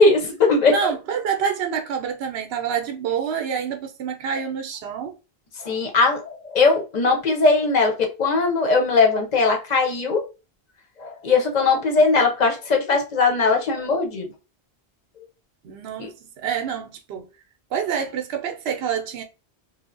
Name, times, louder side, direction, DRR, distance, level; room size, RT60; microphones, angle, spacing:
voice 1, 0.0-0.9 5.6-10.3 11.0-14.3 16.0-16.1, left 4 dB, 45° left, 0.8 m, -19 dB
voice 2, 0.7-5.2 15.6-17.3 17.7-19.2, right 7 dB, 80° right, 0.8 m, -27 dB
3.2 x 2.0 x 2.4 m
omnidirectional pair, 1.1 m